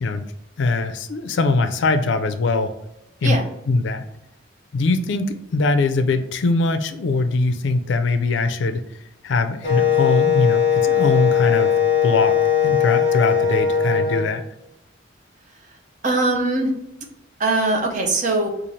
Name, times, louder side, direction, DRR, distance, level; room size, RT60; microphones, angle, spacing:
voice 1, 0.6-2.7 3.2-3.4 3.7-4.0 4.7-8.8 9.2-11.7 12.0-12.3 12.6-14.4, left 3 dB, 65° left, 8 dB, 0.4 m, -21 dB
Wind instrument woodwind instrument, 9.6-14.3, left 8 dB, 25° left, 1.2 m, -19 dB
voice 2, 16.0-16.7 17.4-18.5, right 2 dB, 40° right, 1 dB, 0.6 m, -21 dB
4.1 x 2.4 x 3.1 m, 0.84 s
head